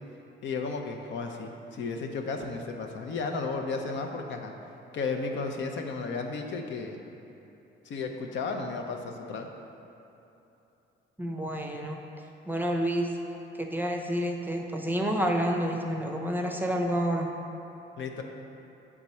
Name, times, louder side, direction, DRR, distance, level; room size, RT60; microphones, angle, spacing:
voice 1, 0.4-4.5 4.9-7.0 7.8-9.5 18.0-18.2, left 4 dB, 70° left, 3 dB, 0.6 m, -33 dB
voice 2, 11.2-12.0 12.5-13.1 13.6-17.3, equal, 10° right, 1 dB, 0.6 m, -29 dB
7.9 x 3.6 x 4.2 m, 2.9 s
cardioid pair, 90°, 20 cm